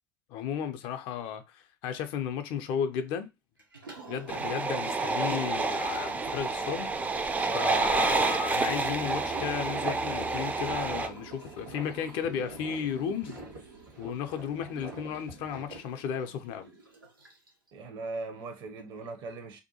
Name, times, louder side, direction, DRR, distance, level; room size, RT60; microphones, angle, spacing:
voice 1, 0.3-3.3 4.1-7.3 7.5-13.4 14.0-16.6, left 8 dB, 50° left, 0.4 m, -34 dB
Liquid, 3.6-17.7, right 4 dB, 90° right, 0.7 m, -48 dB
sound 1, 4.3-11.1, right 3 dB, 15° right, 0.3 m, -29 dB
voice 2, 7.4-8.1 17.7-19.6, right 3 dB, 50° right, 0.7 m, -39 dB
sound 2, 8.6-15.8, right 1 dB, 75° right, 1.2 m, -46 dB
2.6 x 2.2 x 2.7 m
figure-of-eight pair, 65°, 11 cm